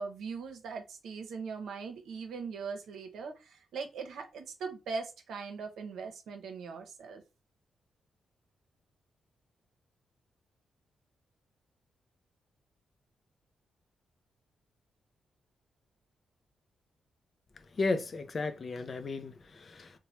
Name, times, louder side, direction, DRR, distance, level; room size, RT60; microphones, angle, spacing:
voice 1, 0.0-7.2, right 5 dB, 85° right, 0.7 m, -40 dB
voice 2, 17.8-20.0, left 3 dB, 40° left, 0.4 m, -34 dB
3.1 x 2.1 x 2.9 m
cardioid pair, 120°, 0 cm